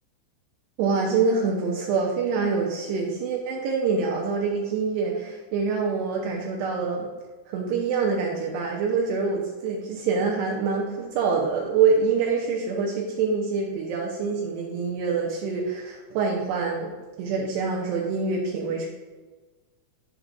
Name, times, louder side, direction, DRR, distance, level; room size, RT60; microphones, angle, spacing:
voice 1, 0.8-7.1 7.5-16.9 17.2-18.9, right 5 dB, 85° right, -1 dB, 2.4 m, -25 dB
11.0 x 4.9 x 2.5 m, 1.3 s
omnidirectional pair, 5.6 m